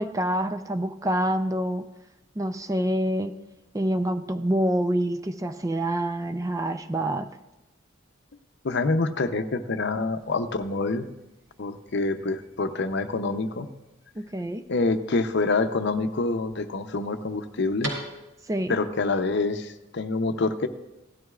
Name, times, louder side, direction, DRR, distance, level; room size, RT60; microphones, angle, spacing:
voice 1, 0.0-1.9 2.4-3.3 3.7-7.3 14.2-14.6 18.5-18.8, right 1 dB, 15° right, 8 dB, 0.4 m, -26 dB
voice 2, 8.6-11.1 11.6-13.7 14.7-17.9 18.7-20.7, left 3 dB, 60° left, 8 dB, 0.7 m, -26 dB
sound 1, 10.2-18.7, right 1 dB, 80° right, 3.8 m, -45 dB
16.5 x 12.5 x 2.4 m, 1.0 s
head